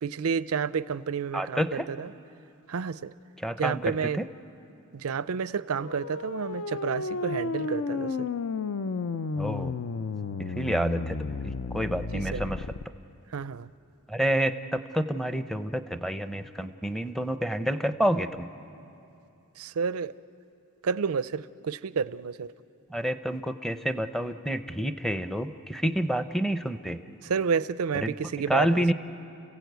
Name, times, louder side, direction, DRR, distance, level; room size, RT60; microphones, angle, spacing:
voice 1, 0.0-2.1 2.7-3.1 3.6-4.2 4.9-8.3 12.1-12.4 13.3-13.7 19.6-20.1 20.8-22.5 27.2-28.9, right 6 dB, 90° right, 16 dB, 0.5 m, -30 dB
voice 2, 1.3-1.9 3.4-4.3 9.4-9.8 10.4-12.7 14.1-18.5 22.9-27.0 28.0-28.1 28.5-28.9, right 1 dB, ahead, 10 dB, 0.6 m, -28 dB
sound 1, 5.7-12.8, left 4 dB, 65° left, 0.5 m, -32 dB
30.0 x 16.5 x 8.1 m, 2.7 s
head